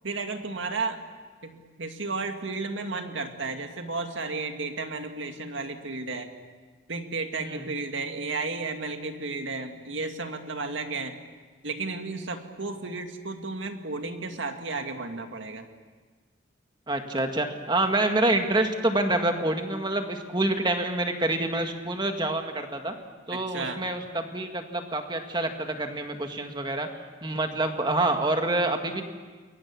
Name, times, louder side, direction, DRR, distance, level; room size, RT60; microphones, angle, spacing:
voice 1, 0.0-1.0 1.4-6.3 6.9-11.1 11.6-15.6 23.3-23.8, right 3 dB, 70° right, 5 dB, 2.1 m, -33 dB
voice 2, 16.9-22.9 23.3-26.9 27.2-29.0, right 2 dB, 20° right, 5 dB, 1.9 m, -27 dB
29.0 x 22.0 x 7.2 m, 1.4 s
head